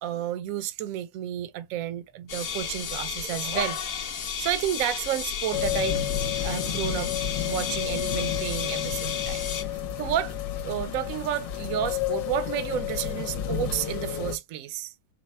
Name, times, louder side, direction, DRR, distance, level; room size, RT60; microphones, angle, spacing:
voice 1, 0.0-3.8 4.4-6.1 6.4-7.1 7.4-10.4 10.6-14.9, right 11 dB, 75° right, 0.7 m, -31 dB
sound 1, 2.3-9.6, left 7 dB, 55° left, 1.1 m, -33 dB
sound 2, 5.5-14.4, left 10 dB, 70° left, 1.4 m, -31 dB
4.8 x 2.0 x 4.3 m
omnidirectional pair, 2.1 m